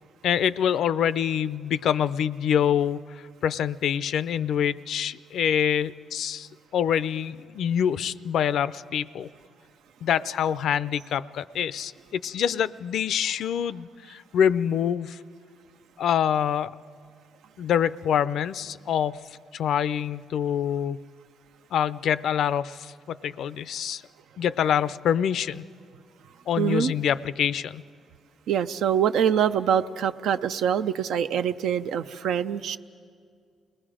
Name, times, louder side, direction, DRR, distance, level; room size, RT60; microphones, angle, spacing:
voice 1, 0.2-3.0 3.4-9.3 10.0-15.2 16.0-16.8 17.6-19.2 19.5-21.0 21.7-24.0 24.4-25.7 26.5-27.8, left 9 dB, 70° left, 16 dB, 0.4 m, -25 dB
voice 2, 26.6-26.9 28.5-32.8, right 8 dB, 75° right, 11 dB, 0.5 m, -24 dB
29.0 x 20.0 x 5.0 m, 2.2 s
cardioid pair, 90°, 0 cm